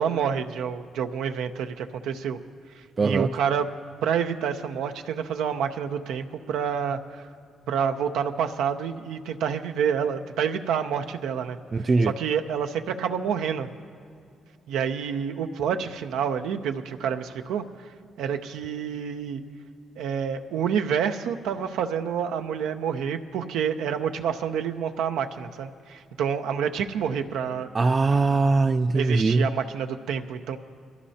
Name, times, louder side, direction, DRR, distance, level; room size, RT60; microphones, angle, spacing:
voice 1, 0.0-2.4 3.0-3.7 4.0-7.2 7.7-11.6 12.0-13.7 14.7-17.6 18.2-19.4 20.0-27.7 28.9-30.6, right 7 dB, 90° right, 0.6 m, -28 dB
voice 2, 3.0-3.3 11.7-12.1 27.7-29.5, right 3 dB, 35° right, 0.3 m, -21 dB
22.0 x 14.5 x 2.8 m
cardioid pair, 80°, 0 cm